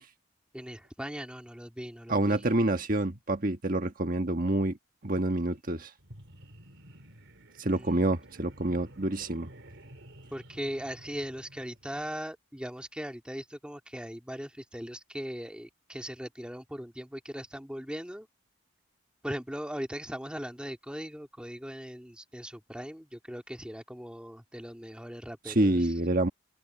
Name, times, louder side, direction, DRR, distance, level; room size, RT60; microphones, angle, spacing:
voice 1, 0.5-2.4 7.6-8.0 10.3-18.3 19.2-25.9, equal, 5° right, 2.1 m, -39 dB
voice 2, 2.1-4.8 5.0-5.9 7.6-9.5 25.5-26.3, right 1 dB, 45° right, 1.5 m, -27 dB
sound 1, 6.0-12.2, right 1 dB, 65° right, 3.7 m, -52 dB
open air
head